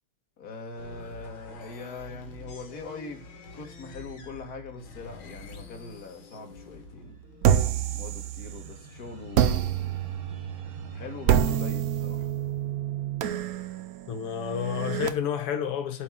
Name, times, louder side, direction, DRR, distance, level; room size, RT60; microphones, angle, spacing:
voice 1, 0.4-3.2 3.5-7.2 7.9-10.0 10.9-12.3, left 3 dB, 45° left, 2.1 m, -42 dB
sound 1, 0.8-7.7, left 3 dB, 65° left, 2.3 m, -46 dB
sound 2, 7.1-11.6, equal, 50° right, 1.4 m, -47 dB
sound 3, 7.4-8.8 9.3-15.1, right 10 dB, 70° right, 0.8 m, -27 dB
voice 2, 14.1-16.0, left 8 dB, 85° left, 1.9 m, -30 dB
8.4 x 4.9 x 7.4 m
omnidirectional pair, 2.4 m